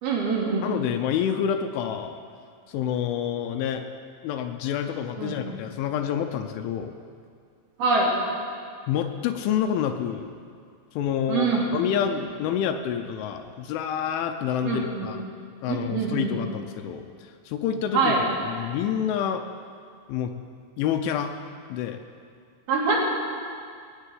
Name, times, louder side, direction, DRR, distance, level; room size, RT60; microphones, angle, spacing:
voice 1, 0.0-0.7 5.2-5.4 7.8-8.1 11.3-11.8 14.6-15.1 15.7-16.3 17.9-18.2 22.7-23.0, right 4 dB, 55° right, -4 dB, 4.2 m, -24 dB
voice 2, 0.6-2.2 2.7-3.8 4.2-6.9 8.9-10.3 11.0-15.2 15.6-18.1 18.4-19.4 20.1-20.3 20.8-21.3 21.7-22.0, left 9 dB, 80° left, 6 dB, 3.0 m, -28 dB
18.0 x 7.6 x 9.1 m, 2.2 s
omnidirectional pair, 5.9 m